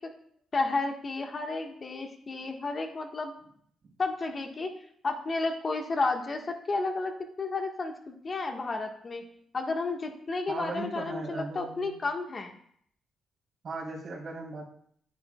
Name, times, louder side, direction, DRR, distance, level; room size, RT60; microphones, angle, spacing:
voice 1, 0.5-3.3 4.0-4.7 5.0-7.1 7.4-9.2 9.5-12.6, left 3 dB, 45° left, 3 dB, 1.4 m, -32 dB
voice 2, 10.5-12.0 13.6-14.7, right 3 dB, 60° right, -3 dB, 3.2 m, -38 dB
9.4 x 8.6 x 2.3 m, 0.65 s
supercardioid pair, 55°, 0 cm